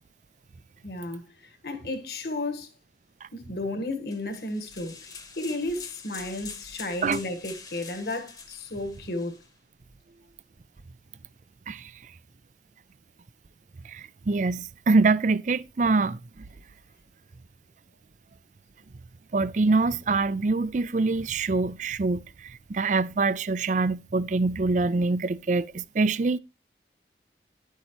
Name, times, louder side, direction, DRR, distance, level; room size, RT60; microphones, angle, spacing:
voice 1, 0.8-2.7 3.3-9.4, left 2 dB, 60° left, 1.7 m, -33 dB
sound 1, 4.1-9.5, left 5 dB, 20° left, 1.1 m, -45 dB
voice 2, 13.9-16.4 19.3-26.4, right 3 dB, 45° right, 0.4 m, -25 dB
11.0 x 8.2 x 3.1 m
head